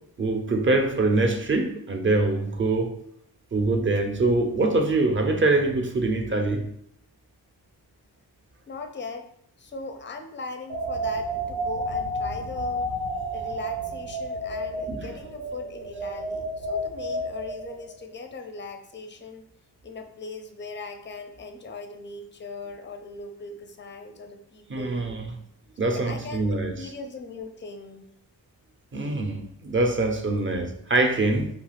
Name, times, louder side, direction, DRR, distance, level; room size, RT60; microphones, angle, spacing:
voice 1, 0.2-2.9 3.5-6.7 14.9-15.0 24.7-25.3 25.8-26.8 28.9-31.5, right 2 dB, 30° right, 5 dB, 0.5 m, -24 dB
voice 2, 8.7-9.3 9.6-12.9 13.3-19.4 19.8-25.2 25.8-26.5 26.7-28.1, left 3 dB, 25° left, 6 dB, 0.4 m, -39 dB
sound 1, 10.7-18.0, right 1 dB, 85° right, 0.6 m, -31 dB
2.4 x 2.3 x 3.1 m, 0.70 s
cardioid pair, 55°, 45 cm